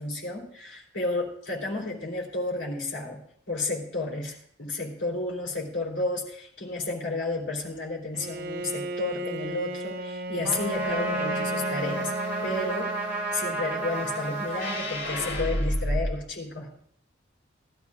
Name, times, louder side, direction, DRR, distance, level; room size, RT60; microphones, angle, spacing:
voice 1, 0.0-3.2 3.5-12.1 12.4-12.9 13.3-16.7, left 2 dB, 75° left, -1 dB, 3.4 m, -32 dB
Bowed string instrument, 8.1-13.6, right 1 dB, 50° right, 0.4 m, -34 dB
Trumpet, 10.4-15.7, right 2 dB, 10° right, 3.4 m, -32 dB
sound 1, 14.5-16.0, left 1 dB, 55° left, 3.6 m, -29 dB
19.0 x 12.0 x 2.4 m, 0.63 s
head